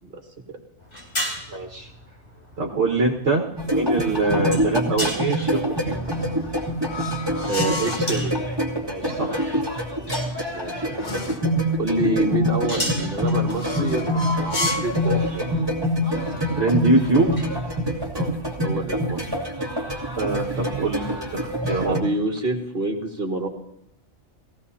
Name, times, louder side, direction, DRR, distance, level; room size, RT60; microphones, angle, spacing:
sound 1, 0.8-17.7, equal, 65° left, 4.6 m, -37 dB
voice 1, 1.5-1.9 2.6-6.0 8.8-9.5 16.5-17.3 20.2-22.0, right 2 dB, 65° right, -3 dB, 1.9 m, -23 dB
sound 2, 3.6-22.0, equal, 20° right, 2.5 m, -25 dB
sound 3, 5.9-8.1 10.1-11.5 13.4-15.0, left 2 dB, 40° left, 1.5 m, -31 dB
voice 2, 7.5-8.3 10.5-11.2 11.8-15.5 18.1-18.4 18.6-19.2 21.9-23.5, right 1 dB, 50° right, 0 dB, 2.4 m, -27 dB
21.5 x 16.5 x 2.8 m, 0.81 s
omnidirectional pair, 1.3 m